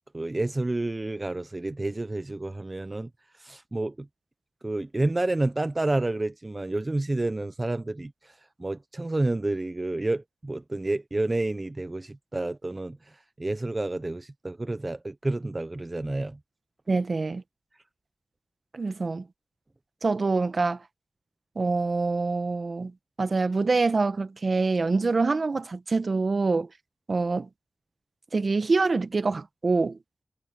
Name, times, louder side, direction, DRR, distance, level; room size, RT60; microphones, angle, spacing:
voice 1, 0.1-3.1 3.4-4.1 4.6-8.3 8.6-13.0 13.4-16.4, right 2 dB, 30° right, 0.9 m, -29 dB
voice 2, 16.9-17.4 18.7-19.2 20.0-20.8 21.5-22.9 23.2-26.7 27.1-27.5 28.3-30.0, right 3 dB, 55° right, 1.4 m, -25 dB
cardioid pair, 50°, 0 cm